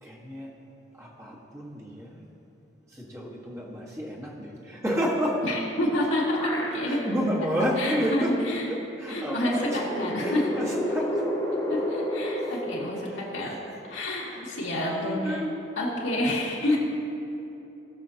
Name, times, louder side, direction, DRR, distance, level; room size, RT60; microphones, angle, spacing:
voice 1, 0.0-0.5 1.0-2.3 2.9-5.4 6.8-8.3 8.7-9.9 10.2-11.3 11.8-11.9 12.4-12.6 13.0-13.8 14.2-14.4 14.8-15.5 15.8-15.9 16.7-16.8, equal, 15° right, -5 dB, 1.5 m, -31 dB
voice 2, 5.4-7.0 7.8-8.7 9.1-10.5 11.7-13.6 13.9-15.4 15.8-16.8, left 1 dB, 75° left, -5 dB, 2.3 m, -28 dB
sound 1, 5.8-7.3 7.7-7.8 9.1-13.9, left 1 dB, 20° left, 1.5 m, -32 dB
18.0 x 7.1 x 2.9 m, 2.9 s
head